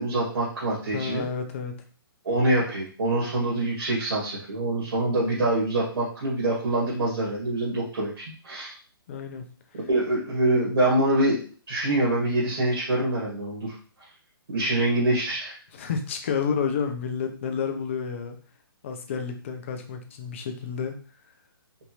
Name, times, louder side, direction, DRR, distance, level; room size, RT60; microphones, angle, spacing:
voice 1, 0.0-1.2 2.2-8.7 9.9-11.4 11.7-13.8 14.5-15.6, right 1 dB, 90° right, -6 dB, 2.0 m, -25 dB
voice 2, 0.9-1.8 9.1-9.8 15.7-18.4 18.8-20.9, left 6 dB, 30° left, 5 dB, 0.6 m, -30 dB
5.2 x 2.6 x 3.0 m, 0.40 s
hypercardioid pair, 170°, 13 cm